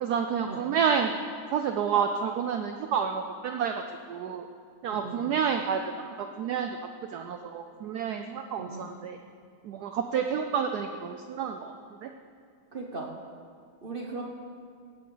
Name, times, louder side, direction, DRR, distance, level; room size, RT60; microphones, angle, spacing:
voice 1, 0.0-1.1 1.5-3.8 4.1-4.5 4.8-6.0 6.4-6.7 7.1-9.2 9.6-11.7 12.0-12.1, right 7 dB, 90° right, 6 dB, 0.8 m, -29 dB
voice 2, 4.9-5.3 8.6-8.8 12.7-13.1 13.8-14.3, right 3 dB, 55° right, 0 dB, 0.6 m, -38 dB
17.0 x 8.3 x 3.9 m, 2.2 s
omnidirectional pair, 2.3 m